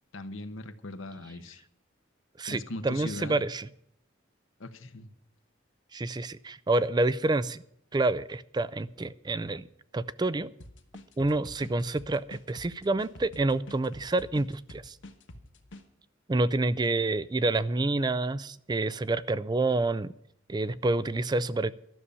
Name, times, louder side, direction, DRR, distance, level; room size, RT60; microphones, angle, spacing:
voice 1, 0.1-1.6 2.4-3.4 4.6-5.1, left 2 dB, 85° left, 9 dB, 1.0 m, -40 dB
voice 2, 2.4-3.7 5.9-7.6 7.9-9.7 9.9-10.5 11.2-15.0 16.3-20.1 20.5-21.7, right 2 dB, 20° right, 17 dB, 0.4 m, -28 dB
sound 1, 10.6-15.8, left 1 dB, 65° left, 1.3 m, -47 dB
12.5 x 6.9 x 10.0 m, 0.72 s
head